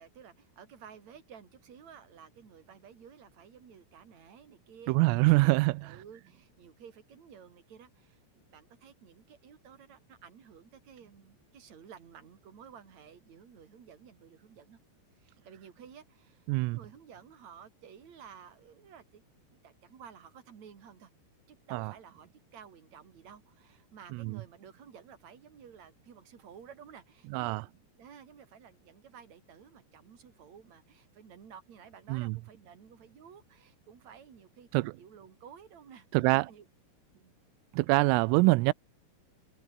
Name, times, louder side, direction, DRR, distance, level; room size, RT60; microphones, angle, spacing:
voice 1, 0.0-5.5 5.8-14.8 15.2-19.2 19.5-21.1 21.5-36.7 37.1-37.3, right 7 dB, 40° right, 3.8 m, -53 dB
voice 2, 4.9-5.9 16.5-16.8 21.7-21.9 24.2-24.4 27.3-27.6 32.1-32.4 34.7-34.9 36.1-36.5 37.7-38.7, right 23 dB, 90° right, 3.3 m, -25 dB
omnidirectional pair, 5.9 m